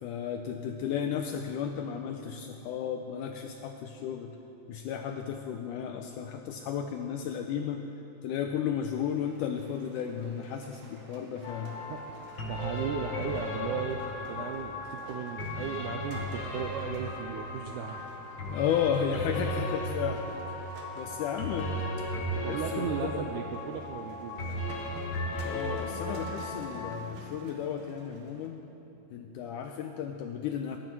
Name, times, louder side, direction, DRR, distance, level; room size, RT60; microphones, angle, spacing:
voice 1, 0.0-4.4 4.7-7.9 8.2-11.8 18.4-21.7 22.3-23.2 25.5-28.6 29.1-30.8, left 8 dB, 85° left, 5 dB, 1.8 m, -34 dB
sound 1, 9.0-28.5, right 2 dB, 55° right, 1.7 m, -51 dB
sound 2, 11.4-27.0, left 1 dB, 55° left, 1.4 m, -36 dB
voice 2, 12.5-18.1 22.4-24.6, right 8 dB, 85° right, 4 dB, 1.7 m, -36 dB
21.5 x 10.0 x 4.6 m, 3.0 s
omnidirectional pair, 4.1 m